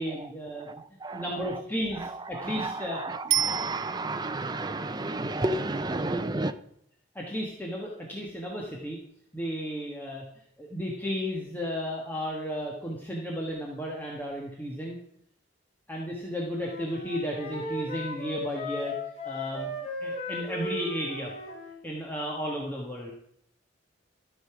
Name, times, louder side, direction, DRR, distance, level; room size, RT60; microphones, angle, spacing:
voice 1, 0.0-0.8 1.1-3.0 7.1-9.0 9.3-10.2 10.6-15.0 15.9-18.9 19.2-19.7 20.0-21.3 21.8-23.1, equal, 10° left, -3 dB, 1.4 m, -33 dB
voice 2, 0.6-1.3 2.0-6.5, right 2 dB, 20° right, 9 dB, 0.5 m, -32 dB
Bicycle bell, 3.3-4.4 13.5-13.6, right 11 dB, 90° right, 0.6 m, -29 dB
Wind instrument woodwind instrument, 16.5-21.8, left 2 dB, 30° left, 4.0 m, -36 dB
13.5 x 6.6 x 4.9 m, 0.70 s
head